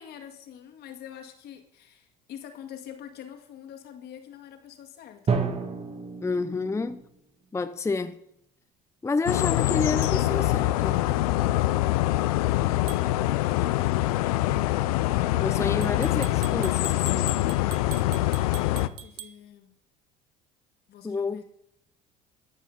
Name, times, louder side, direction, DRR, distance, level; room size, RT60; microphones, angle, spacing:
voice 1, 0.0-5.4 19.0-19.7 20.9-21.4, left 9 dB, 60° left, 2.1 m, -45 dB
Drum, 5.3-7.2, right 5 dB, 35° right, 1.6 m, -30 dB
voice 2, 6.2-7.0 7.5-8.2 9.0-11.0 15.4-17.5 21.0-21.4, left 3 dB, 15° left, 0.6 m, -29 dB
sound 1, 9.3-18.9, left 16 dB, 90° left, 0.5 m, -24 dB
sound 2, 10.0-10.2 12.9-13.1 15.8-19.4, right 13 dB, 75° right, 1.0 m, -43 dB
13.0 x 5.6 x 6.6 m
supercardioid pair, 80°, 18 cm